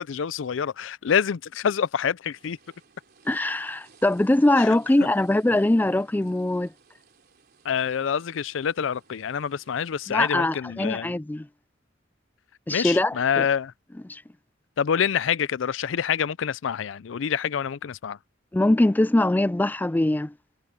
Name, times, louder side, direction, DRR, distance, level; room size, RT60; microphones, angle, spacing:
voice 1, 0.0-2.6 4.6-4.7 7.6-11.1 12.7-13.7 14.8-18.2, left 7 dB, 75° left, 0.4 m, -26 dB
sound 1, 2.3-10.3, right 5 dB, 55° right, 3.5 m, -59 dB
voice 2, 3.3-6.7 10.1-11.5 12.7-13.5 14.0-14.2 18.5-20.3, left 1 dB, 10° left, 0.3 m, -22 dB
head